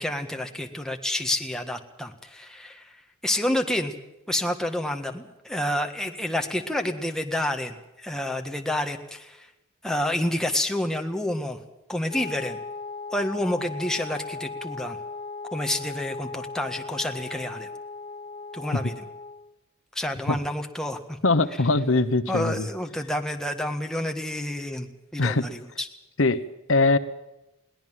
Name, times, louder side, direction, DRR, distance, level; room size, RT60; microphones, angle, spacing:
voice 1, 0.0-3.9 4.3-9.5 9.8-11.6 11.9-12.6 13.1-15.0 15.5-17.7 18.5-19.0 19.9-21.2 22.3-25.9, left 1 dB, 5° left, 4 dB, 1.6 m, -29 dB
Wind instrument woodwind instrument, 12.1-19.5, left 4 dB, 30° left, 1.0 m, -38 dB
voice 2, 21.2-22.7 25.2-25.5 26.2-27.0, left 3 dB, 65° left, 12 dB, 1.0 m, -22 dB
22.5 x 17.5 x 7.6 m, 0.94 s
head